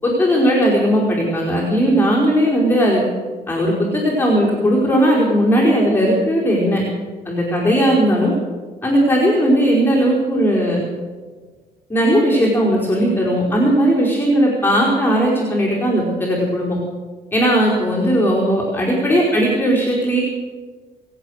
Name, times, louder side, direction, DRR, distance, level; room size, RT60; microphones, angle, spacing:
voice 1, 0.0-3.0 3.5-6.8 7.2-8.3 8.8-10.8 11.9-16.8 17.3-20.2, equal, 10° left, -5 dB, 4.8 m, -17 dB
24.5 x 8.7 x 6.4 m, 1.4 s
cardioid pair, 110°, 17 cm